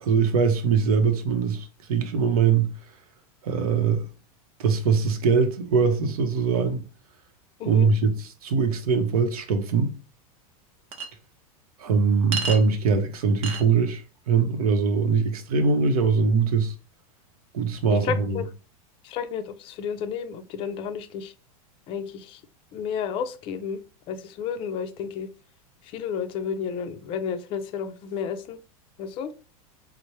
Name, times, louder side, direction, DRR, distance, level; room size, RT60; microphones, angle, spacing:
voice 1, 0.0-2.7 3.4-4.0 4.6-6.8 7.6-10.0 11.8-16.7 17.5-18.4, right 5 dB, 90° right, 0.7 m, -22 dB
Chink clink, 10.9-11.1 12.3-12.6 13.4-13.6, right 4 dB, 30° right, 0.6 m, -29 dB
voice 2, 17.9-18.5 19.0-21.3 21.9-22.4 22.7-23.8 24.1-25.3 25.8-28.6 29.0-29.3, left 7 dB, 30° left, 0.4 m, -31 dB
4.1 x 2.0 x 3.1 m
supercardioid pair, 140°, 19 cm